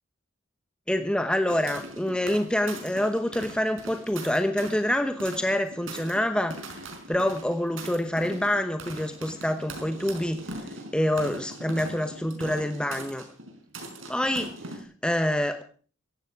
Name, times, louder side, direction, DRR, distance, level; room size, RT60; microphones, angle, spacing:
voice 1, 0.9-6.6 7.1-10.4 10.9-13.2 14.1-15.6, left 1 dB, 5° left, 7 dB, 1.1 m, -26 dB
sound 1, 1.5-14.8, right 2 dB, 90° right, 5.0 m, -41 dB
16.5 x 15.0 x 4.8 m, 0.42 s
head